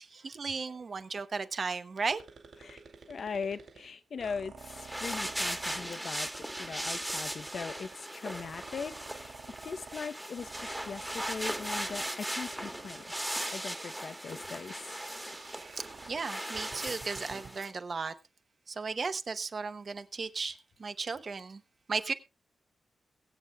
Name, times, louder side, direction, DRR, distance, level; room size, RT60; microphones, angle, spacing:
voice 1, 0.0-2.2 16.1-18.1 18.7-21.6 21.9-22.1, right 4 dB, 40° right, 0.9 m, -35 dB
sound 1, 2.1-17.6, right 5 dB, 60° right, 2.9 m, -51 dB
voice 2, 3.1-13.0 13.5-15.0, left 5 dB, 55° left, 0.7 m, -40 dB
sound 2, 4.6-17.7, right 1 dB, 5° right, 1.3 m, -38 dB
22.5 x 8.0 x 2.3 m
wide cardioid pair, 145°, 0 cm